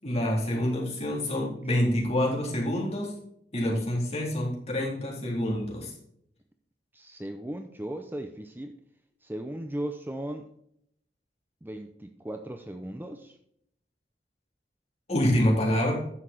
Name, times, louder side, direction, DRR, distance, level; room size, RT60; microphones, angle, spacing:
voice 1, 0.0-3.1 3.5-5.9 15.1-15.9, left 1 dB, 35° left, -2 dB, 3.6 m, -27 dB
voice 2, 6.9-8.8 9.2-10.5 11.6-13.4, right 1 dB, 10° right, 6 dB, 0.6 m, -37 dB
10.0 x 7.1 x 4.3 m, 0.71 s
head